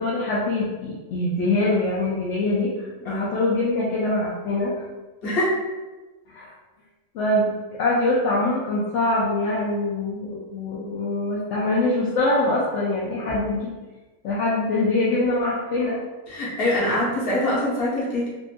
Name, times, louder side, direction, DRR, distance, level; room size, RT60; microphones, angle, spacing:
voice 1, 0.0-4.8 6.3-6.5 7.1-13.7 14.2-16.0, left 2 dB, 70° left, -6 dB, 0.9 m, -24 dB
voice 2, 5.2-5.6 16.3-18.3, left 1 dB, 50° left, -6 dB, 1.1 m, -23 dB
3.7 x 2.4 x 2.5 m, 1.2 s
omnidirectional pair, 1.4 m